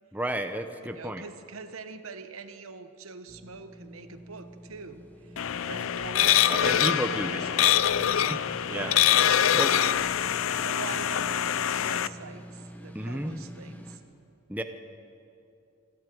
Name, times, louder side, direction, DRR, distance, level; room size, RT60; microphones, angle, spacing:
voice 1, 0.1-1.2 6.5-7.5 8.3-8.4 8.7-9.0 9.5-9.7 12.9-13.4 14.5-14.6, right 1 dB, 10° right, 6 dB, 0.8 m, -32 dB
voice 2, 0.7-5.4 5.6-14.0, right 4 dB, 85° right, 9 dB, 1.1 m, -43 dB
sound 1, 3.3-14.0, right 1 dB, 10° left, 1.2 m, -45 dB
sound 2, 5.4-12.1, left 10 dB, 75° left, 0.5 m, -24 dB
26.5 x 11.0 x 9.1 m, 2.6 s
head